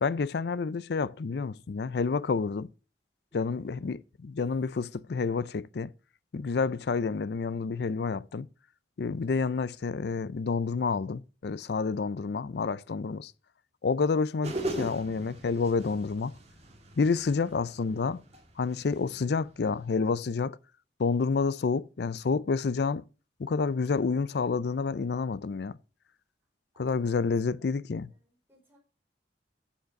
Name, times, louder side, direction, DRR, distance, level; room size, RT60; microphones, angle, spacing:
voice 1, 0.0-2.7 3.3-5.9 6.3-8.5 9.0-13.3 13.8-16.3 17.0-18.2 18.6-20.6 21.0-23.0 23.4-25.8 26.8-28.1, left 4 dB, 65° left, 0.4 m, -29 dB
voice 2, 3.3-4.0 17.3-18.2 26.7-27.3 28.1-28.8, equal, 10° right, 4.8 m, -61 dB
sound 1, 14.4-20.0, right 1 dB, 40° right, 2.1 m, -40 dB
9.2 x 7.3 x 5.1 m
head